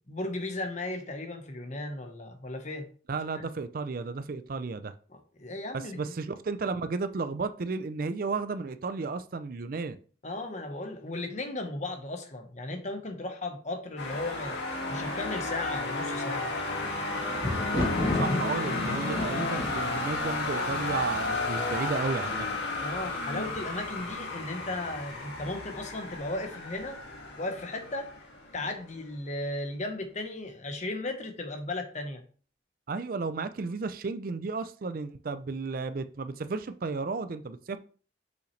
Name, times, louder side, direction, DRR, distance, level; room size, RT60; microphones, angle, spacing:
voice 1, 0.1-2.9 3.3-3.4 5.1-6.1 10.2-14.6 14.9-16.5 22.8-27.0 27.4-28.2 28.5-32.2, left 2 dB, 40° left, 1.1 m, -36 dB
voice 2, 3.1-4.9 5.7-10.0 17.7-22.5 32.9-37.8, right 4 dB, 50° right, 0.5 m, -33 dB
sound 1, 14.0-28.8, left 2 dB, 75° left, 2.1 m, -33 dB
Thunder, 16.4-21.5 22.3-22.8 23.0-23.1, left 2 dB, 25° left, 1.2 m, -33 dB
6.4 x 5.6 x 3.2 m
head